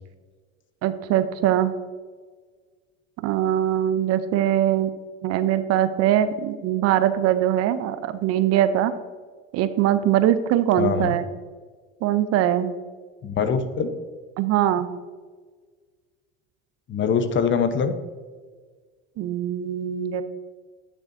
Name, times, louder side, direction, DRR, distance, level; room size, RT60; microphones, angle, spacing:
voice 1, 0.8-1.7 3.2-4.9 5.2-8.9 9.5-11.2 12.0-12.7 14.4-14.9 19.2-20.2, right 11 dB, 50° right, 12 dB, 0.6 m, -22 dB
voice 2, 10.8-11.2 13.2-13.9 16.9-17.9, left 6 dB, 40° left, 9 dB, 0.9 m, -23 dB
9.6 x 6.8 x 2.7 m, 1.5 s
hypercardioid pair, 85°, 31 cm